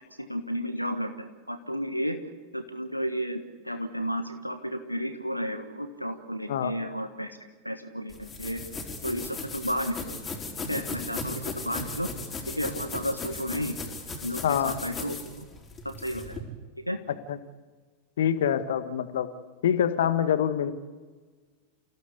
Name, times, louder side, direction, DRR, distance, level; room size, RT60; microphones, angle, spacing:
voice 1, 0.2-2.2 2.5-7.3 7.6-8.6 9.0-10.1 10.7-12.1 12.6-13.7 14.2-15.5 16.0-16.4 16.9-17.0, equal, 90° left, 8 dB, 1.4 m, -32 dB
sound 1, 8.1-16.4, left 3 dB, 20° left, 4.5 m, -37 dB
voice 2, 14.4-14.7 17.3-17.4 18.2-19.3 19.6-20.7, left 9 dB, 60° left, 11 dB, 1.6 m, -25 dB
29.0 x 16.5 x 8.4 m, 1.4 s
figure-of-eight pair, 90°, 0 cm